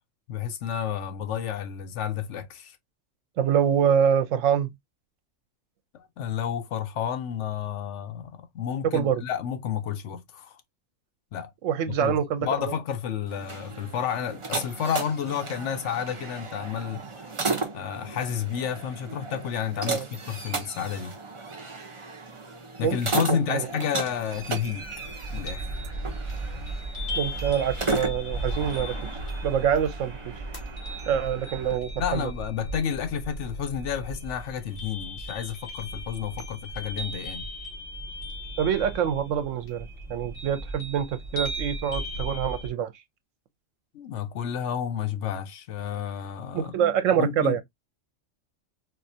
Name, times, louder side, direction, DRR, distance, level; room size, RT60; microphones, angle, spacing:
voice 1, 0.3-2.8 5.9-10.6 11.3-11.5 11.9-17.3 17.7-21.2 22.8-24.9 25.3-25.7 32.0-37.5 43.9-46.7 47.2-47.6, left 8 dB, 70° left, 0.9 m, -31 dB
voice 2, 3.4-4.7 8.9-9.2 11.6-12.7 19.9-20.1 22.8-23.0 23.3-23.7 27.2-28.9 29.4-30.3 31.1-32.3 38.6-42.9 46.5-47.6, right 8 dB, 80° right, 1.0 m, -25 dB
sound 1, 13.3-31.8, right 3 dB, 30° right, 0.6 m, -35 dB
sound 2, 24.3-42.7, right 1 dB, 45° left, 1.4 m, -36 dB
4.0 x 2.4 x 2.6 m
omnidirectional pair, 1.3 m